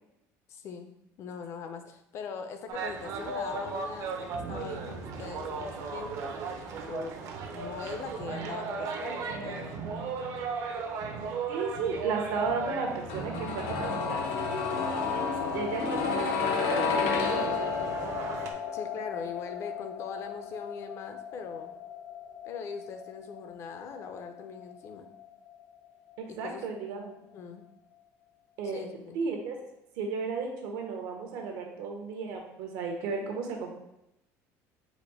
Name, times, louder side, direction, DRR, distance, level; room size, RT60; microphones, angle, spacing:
voice 1, 0.5-6.3 6.9-7.2 7.5-9.8 14.7-15.9 18.7-21.7 22.4-25.1 26.3-26.6 27.2-27.6 28.6-29.2, left 5 dB, 45° left, 7 dB, 0.5 m, -41 dB
sound 1, 2.7-18.5, right 4 dB, 55° right, 0.7 m, -37 dB
voice 2, 11.5-14.2 15.5-18.0 26.2-27.1 28.6-29.6 30.0-33.7, right 5 dB, 75° right, 2 dB, 1.0 m, -34 dB
sound 2, 13.1-24.9 25.2-25.3, left 5 dB, 80° left, 0.7 m, -32 dB
4.2 x 2.6 x 4.8 m, 0.86 s
cardioid pair, 160°, 7 cm